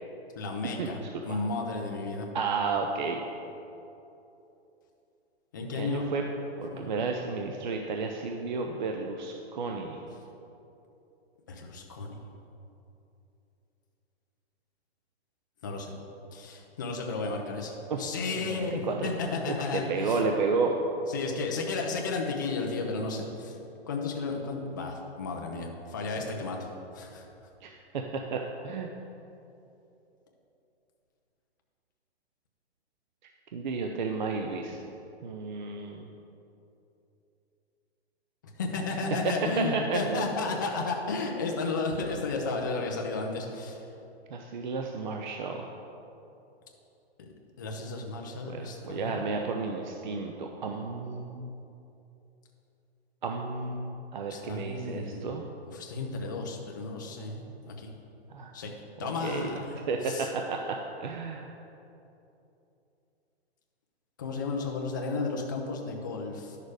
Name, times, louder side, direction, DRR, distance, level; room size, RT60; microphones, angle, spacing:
voice 1, 0.4-2.3 5.5-6.1 6.7-6.9 11.5-12.2 15.6-15.9 16.3-20.2 21.1-23.6 23.9-26.7 26.9-27.2 38.4-43.9 47.2-47.3 47.6-49.2 54.3-55.3 55.7-57.9 58.5-58.7 59.0-60.3 64.2-66.6, left 3 dB, 20° left, 1 dB, 0.5 m, -33 dB
voice 2, 2.3-3.2 5.6-6.2 6.6-10.0 17.9-18.0 18.4-19.1 19.5-20.8 27.6-28.0 28.3-28.9 33.5-34.8 35.2-36.1 39.2-40.3 44.3-45.7 48.5-51.5 53.2-55.4 58.3-58.6 59.0-59.6 59.9-61.5, right 4 dB, 45° right, 3 dB, 0.6 m, -32 dB
10.5 x 6.6 x 4.8 m, 2.8 s
hypercardioid pair, 170°, 33 cm